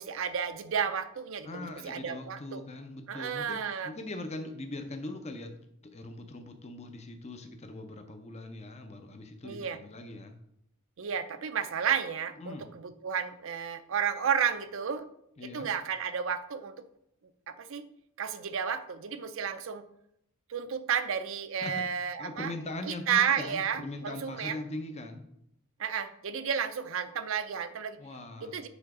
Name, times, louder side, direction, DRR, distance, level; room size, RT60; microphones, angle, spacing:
voice 1, 0.0-2.6 3.1-3.9 9.4-9.8 11.0-15.1 15.4-16.7 17.5-17.8 18.2-19.8 20.5-22.5 22.9-24.6 25.8-28.0 28.4-28.7, right 7 dB, 65° right, 11 dB, 0.5 m, -32 dB
voice 2, 1.4-5.6 5.8-10.4 12.4-12.7 15.4-15.7 21.6-25.3 28.0-28.7, left 2 dB, 30° left, 5 dB, 0.6 m, -41 dB
7.1 x 3.9 x 4.8 m, 0.75 s
head